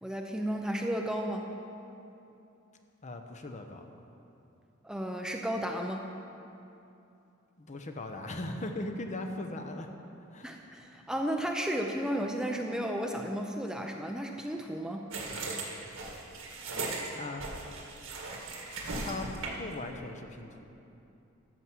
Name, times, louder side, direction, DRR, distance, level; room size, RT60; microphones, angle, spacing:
voice 1, 0.0-1.5 4.8-6.1 10.4-15.1, equal, 5° right, 2 dB, 0.6 m, -33 dB
voice 2, 3.0-3.9 7.6-9.9 10.3-10.5 17.2-17.4 19.0-19.3 19.6-20.7, left 2 dB, 35° left, 5 dB, 0.8 m, -38 dB
sound 1, 15.1-19.7, right 3 dB, 80° right, 1.8 m, -38 dB
13.5 x 7.1 x 6.2 m, 2.8 s
head